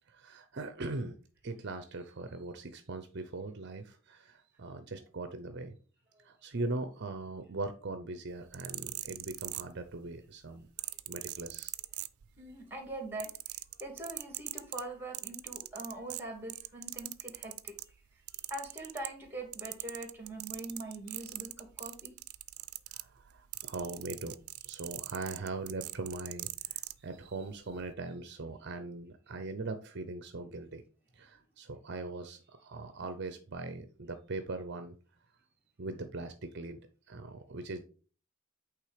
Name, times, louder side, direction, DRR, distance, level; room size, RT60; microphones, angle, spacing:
voice 1, 0.1-1.1 1.4-5.8 6.2-10.7 11.1-11.7 18.3-18.5 22.9-24.4 24.6-30.8 31.1-34.9 35.8-36.8 37.1-37.8, right 3 dB, 55° right, 9 dB, 0.7 m, -40 dB
volume knob, 8.4-10.1 10.8-12.5 12.9-17.9 18.3-19.3 19.5-27.0 27.7-27.9, right 18 dB, 90° right, 0.5 m, -41 dB
voice 2, 12.4-17.7 18.5-22.1, right 2 dB, 10° right, 4 dB, 2.2 m, -43 dB
8.7 x 3.5 x 5.0 m, 0.39 s
head